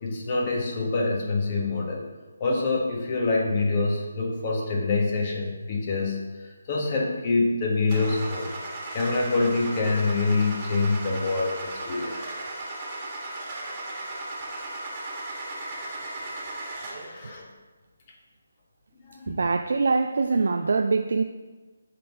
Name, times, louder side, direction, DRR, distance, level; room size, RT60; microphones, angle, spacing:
voice 1, 0.0-2.1 2.4-8.5 8.9-12.2 16.9-17.4 19.0-19.3, left 3 dB, 35° left, -1 dB, 1.5 m, -26 dB
Car / Engine starting, 7.9-17.2, right 2 dB, 25° right, 1.7 m, -36 dB
voice 2, 19.3-21.2, right 4 dB, 65° right, 6 dB, 0.4 m, -23 dB
7.4 x 3.8 x 5.5 m, 1.3 s
figure-of-eight pair, 155°, 0 cm